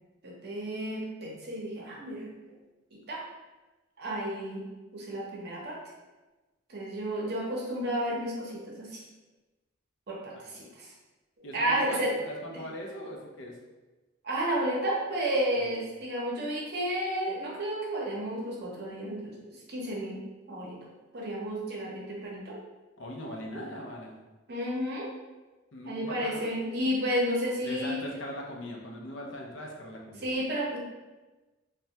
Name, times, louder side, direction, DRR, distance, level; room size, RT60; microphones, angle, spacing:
voice 1, 0.2-2.3 2.9-3.2 4.0-4.6 4.9-5.8 6.7-9.0 10.1-10.9 11.5-12.1 14.2-19.3 19.7-20.2 20.5-20.8 21.1-22.6 24.5-25.1 25.8-28.0 30.2-30.8, right 1 dB, 55° right, -3 dB, 0.7 m, -32 dB
voice 2, 11.4-13.6 15.6-15.8 23.0-24.1 25.7-26.5 27.6-30.3, left 1 dB, 65° left, 0 dB, 0.5 m, -40 dB
3.2 x 2.2 x 2.8 m, 1.2 s
head